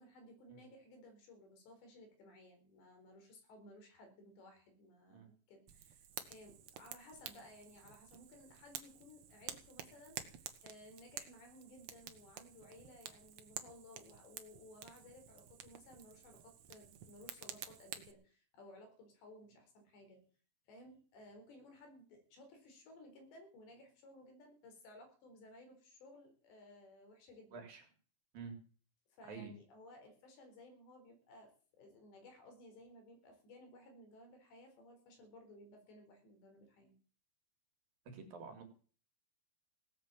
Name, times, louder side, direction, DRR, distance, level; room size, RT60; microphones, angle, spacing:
voice 1, 0.0-20.2 20.7-27.6 29.1-37.0, left 1 dB, 75° left, 4 dB, 6.6 m, -58 dB
Fire, 5.7-18.1, right 9 dB, 85° right, 1.5 m, -51 dB
voice 2, 27.5-27.8 28.3-28.5 29.3-29.5 38.1-38.6, right 5 dB, 55° right, 5 dB, 4.1 m, -49 dB
18.0 x 8.6 x 7.6 m, 0.40 s
omnidirectional pair, 5.1 m